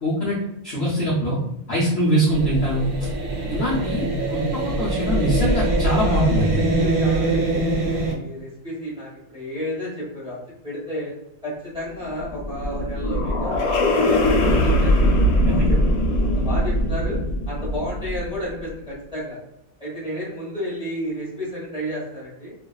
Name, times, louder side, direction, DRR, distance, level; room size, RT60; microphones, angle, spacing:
voice 1, 0.0-0.4 0.6-1.4 1.7-2.9 3.5-6.5 15.4-15.7, equal, 60° left, -7 dB, 0.7 m, -23 dB
sound 1, 2.3-8.1, right 2 dB, 85° right, 1.1 m, -23 dB
voice 2, 5.3-10.4 10.6-11.1 11.4-15.8 16.2-17.2 17.5-19.4 19.8-22.5, equal, 5° right, -8 dB, 1.0 m, -32 dB
sound 2, 12.0-18.5, left 1 dB, 90° left, 1.0 m, -21 dB
2.5 x 2.2 x 2.2 m, 0.81 s
omnidirectional pair, 1.5 m